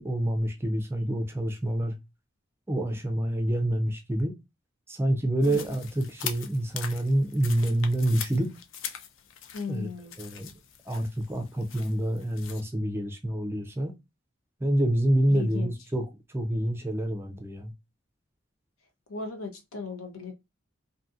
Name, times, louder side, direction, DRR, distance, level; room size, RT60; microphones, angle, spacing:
voice 1, 0.0-1.9 2.7-4.3 4.9-8.5 9.7-9.9 10.2-10.5 10.9-13.9 14.6-17.7, right 1 dB, 10° right, 0.4 m, -27 dB
sound 1, 5.4-12.6, left 8 dB, 65° left, 0.4 m, -42 dB
voice 2, 9.5-10.2 15.3-15.7 19.1-20.3, left 4 dB, 85° left, 0.8 m, -36 dB
2.7 x 2.4 x 2.6 m
head